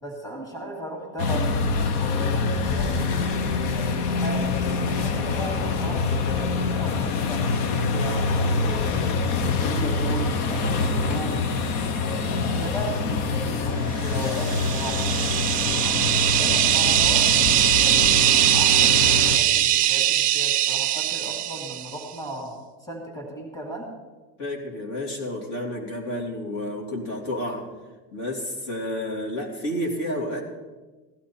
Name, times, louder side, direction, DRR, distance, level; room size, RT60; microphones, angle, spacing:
voice 1, 0.0-1.5 2.0-3.2 3.7-9.1 9.4-11.4 11.9-17.3 17.8-22.5 22.8-23.9, equal, 10° left, -1 dB, 2.4 m, -36 dB
sound 1, 1.2-19.4, left 4 dB, 75° left, 1.2 m, -25 dB
sound 2, 14.2-22.0, right 13 dB, 20° right, 0.3 m, -21 dB
voice 2, 24.4-27.7 28.1-30.4, left 1 dB, 55° left, 0 dB, 3.1 m, -30 dB
16.0 x 11.5 x 4.4 m, 1.2 s
supercardioid pair, 145°, 45 cm